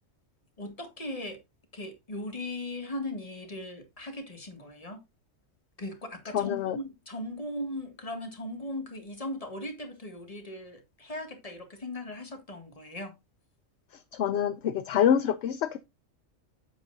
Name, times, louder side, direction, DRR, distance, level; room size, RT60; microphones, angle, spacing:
voice 1, 0.6-1.4 1.7-5.0 5.8-13.1, left 1 dB, 30° left, 1.8 m, -38 dB
voice 2, 6.3-6.8 14.2-15.8, left 9 dB, 65° left, 0.8 m, -26 dB
9.0 x 7.7 x 2.5 m
omnidirectional pair, 1.3 m